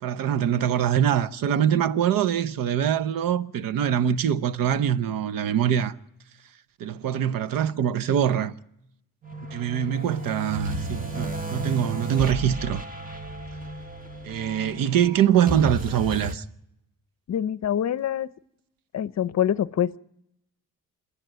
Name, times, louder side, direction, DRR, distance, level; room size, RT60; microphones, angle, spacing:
voice 1, 0.0-5.9 6.8-8.5 9.5-12.8 14.2-16.4, right 9 dB, 90° right, 0.8 m, -24 dB
sound 1, 9.2-16.3, right 1 dB, 25° right, 1.7 m, -33 dB
voice 2, 17.3-18.3 18.9-20.0, left 10 dB, 55° left, 0.7 m, -25 dB
27.5 x 10.5 x 9.2 m
cardioid pair, 110°, 33 cm